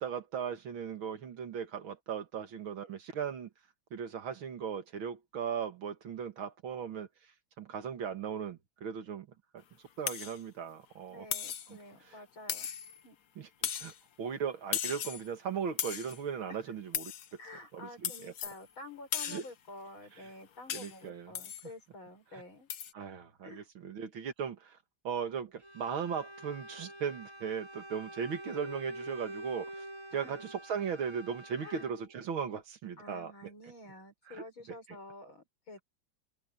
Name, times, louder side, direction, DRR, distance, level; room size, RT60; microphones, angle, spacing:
voice 1, 0.0-3.5 3.9-7.1 7.6-9.3 10.0-11.3 11.7-11.8 12.1-12.2 13.4-13.9 14.2-17.1 17.7-18.3 19.2-19.4 20.2-20.3 20.7-21.3 22.3-22.4 22.9-24.8 25.0-29.8 30.1-33.3 34.3-34.8, right 7 dB, 80° right, 2.6 m, -38 dB
sound 1, 10.1-10.4 11.3-11.7 12.5-13.0 13.6-14.0 14.7-15.3 15.8-16.2 16.9-17.3 18.0-18.6 19.1-19.5 20.7-21.0 21.4-21.7 22.7-22.9, left 9 dB, 55° left, 1.4 m, -36 dB
voice 2, 11.1-12.7 13.0-13.2 16.5-16.6 17.4-22.7 23.4-23.7 30.1-30.5 31.6-31.8 33.0-35.8, left 2 dB, 80° left, 7.8 m, -49 dB
Bowed string instrument, 25.6-32.2, right 1 dB, 15° right, 3.1 m, -46 dB
open air
omnidirectional pair, 2.2 m